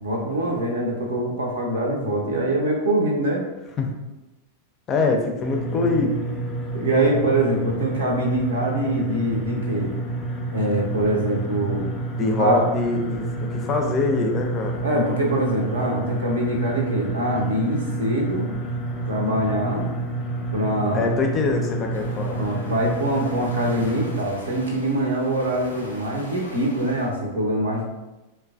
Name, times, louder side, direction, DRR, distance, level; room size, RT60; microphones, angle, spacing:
voice 1, 0.0-3.4 6.7-9.9 10.5-11.9 12.4-12.6 14.8-18.5 19.1-19.9 20.5-21.0 22.4-27.8, right 1 dB, 65° right, 0 dB, 0.6 m, -24 dB
voice 2, 4.9-6.2 12.2-14.8 20.9-22.4, left 3 dB, 30° left, 2 dB, 0.4 m, -24 dB
sound 1, 5.4-24.2, right 2 dB, 10° right, 0.7 m, -29 dB
sound 2, 21.9-27.1, left 1 dB, 85° left, 0.5 m, -42 dB
3.1 x 2.1 x 2.4 m, 1.0 s
figure-of-eight pair, 90°, 0 cm